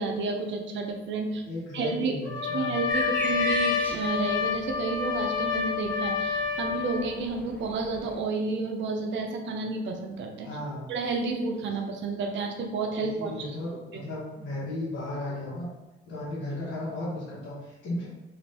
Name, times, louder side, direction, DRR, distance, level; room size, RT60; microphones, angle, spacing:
voice 1, 0.0-1.4 1.7-2.2 2.5-10.5 10.9-13.6 13.9-14.1, right 3 dB, 70° right, 3 dB, 0.6 m, -31 dB
voice 2, 1.5-2.8 10.4-10.9 13.0-15.7 16.1-18.1, left 1 dB, 75° left, -7 dB, 1.0 m, -35 dB
Trumpet, 2.2-7.1, left 6 dB, 45° left, 1.2 m, -29 dB
sound 1, 2.9-8.2, left 1 dB, 10° left, 0.6 m, -38 dB
2.6 x 2.5 x 3.3 m, 1.1 s
cardioid pair, 90°, 20 cm